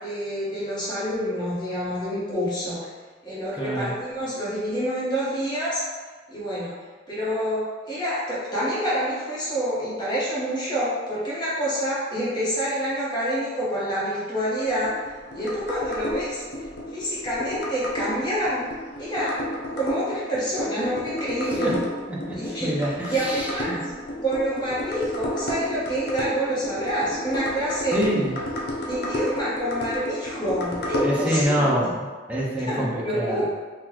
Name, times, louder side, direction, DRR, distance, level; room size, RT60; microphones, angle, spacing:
voice 1, 0.0-2.9 3.2-5.8 6.3-6.7 7.1-15.0 15.3-16.4 16.9-18.6 19.0-19.4 19.8-21.8 22.3-23.8 24.2-28.0 28.9-31.9 32.5-33.4, equal, 25° left, -9 dB, 1.2 m, -27 dB
voice 2, 3.5-3.9 21.6-21.7 22.3-23.8 27.9-28.3 31.0-33.4, equal, 10° right, -5 dB, 0.6 m, -26 dB
sound 1, 14.6-31.4, equal, 60° left, 0.5 m, -32 dB
3.9 x 2.5 x 2.9 m, 1.4 s
head